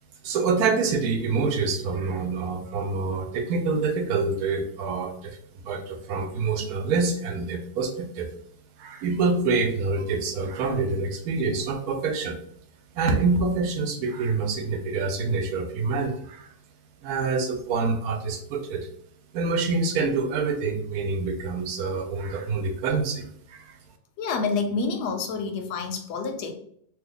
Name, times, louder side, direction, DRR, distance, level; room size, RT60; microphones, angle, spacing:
voice 1, 0.2-5.4 5.6-8.3 8.8-12.4 12.9-16.5 17.0-18.9 19.3-23.8, right 4 dB, 75° right, 5 dB, 1.1 m, -26 dB
voice 2, 24.2-26.5, left 4 dB, 85° left, 4 dB, 1.2 m, -28 dB
2.9 x 2.2 x 3.7 m, 0.66 s
omnidirectional pair, 1.7 m